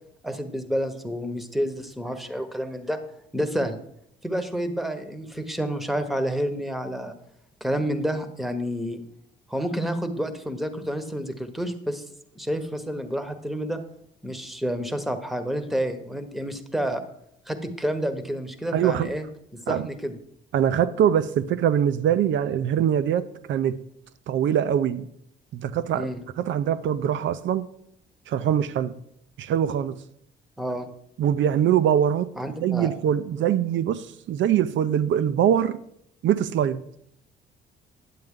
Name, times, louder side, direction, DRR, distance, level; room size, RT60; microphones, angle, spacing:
voice 1, 0.2-3.0 3.3-3.8 4.2-7.1 7.6-9.0 9.5-12.0 12.3-13.8 14.2-17.0 17.5-19.2 19.5-20.1 25.9-26.2 30.6-30.9 32.4-32.9, equal, ahead, 1.0 m, -29 dB
voice 2, 18.7-19.2 19.7-19.9 20.5-23.8 24.3-25.1 25.5-26.1 26.4-27.7 28.3-28.9 29.4-29.9 31.2-32.3 32.6-35.8 36.2-36.8, right 9 dB, 70° right, 0.6 m, -23 dB
9.4 x 7.7 x 3.7 m
cardioid pair, 90°, 20 cm